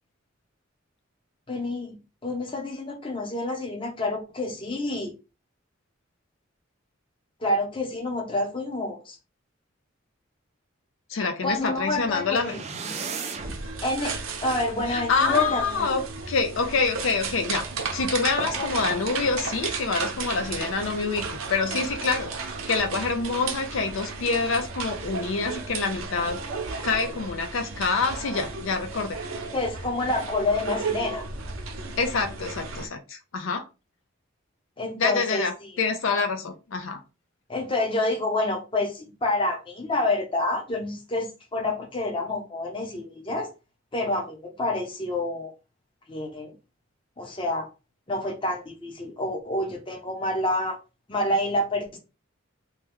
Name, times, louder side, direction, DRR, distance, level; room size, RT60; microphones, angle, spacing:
voice 1, 1.5-5.1 7.4-9.2 11.4-12.6 13.8-16.0 18.6-18.7 29.5-31.2 34.8-35.7 37.5-43.5 43.9-45.5 46.1-46.6 47.2-47.7 48.1-50.8 51.1-52.0, left 2 dB, 25° left, 0.7 m, -28 dB
voice 2, 11.1-12.6 14.9-16.0 16.3-17.7 17.9-22.3 22.7-26.4 26.8-29.2 32.0-33.6 35.0-37.0, left 4 dB, 70° left, 0.5 m, -26 dB
sound 1, 11.5-13.7, right 5 dB, 35° right, 0.4 m, -36 dB
sound 2, 13.4-32.9, right 4 dB, 80° right, 0.7 m, -34 dB
2.9 x 2.2 x 3.4 m
head